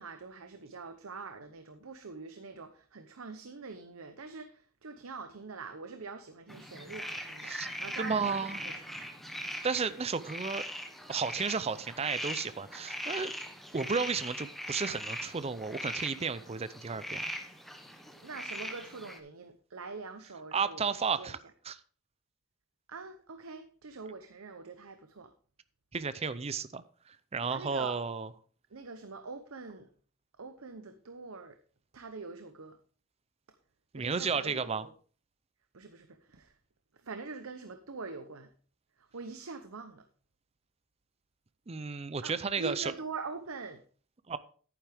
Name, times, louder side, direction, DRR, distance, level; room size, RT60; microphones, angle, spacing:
voice 1, 0.0-8.4 8.9-9.0 18.2-20.9 21.2-21.3 22.9-25.3 27.5-28.0 28.7-29.9 30.4-31.6 31.9-32.8 33.9-34.9 35.7-36.6 36.9-38.5 39.0-40.1 42.2-43.8, right 4 dB, 80° right, 7 dB, 0.9 m, -44 dB
sound 1, 6.5-19.2, equal, ahead, 1.3 m, -41 dB
voice 2, 8.0-8.6 9.6-10.6 11.1-13.3 13.7-17.2 20.5-21.4 21.6-21.8 25.9-28.3 33.9-34.9 41.7-42.9 44.3-44.4, right 5 dB, 30° right, 14 dB, 0.5 m, -33 dB
11.0 x 9.4 x 3.5 m, 0.42 s
head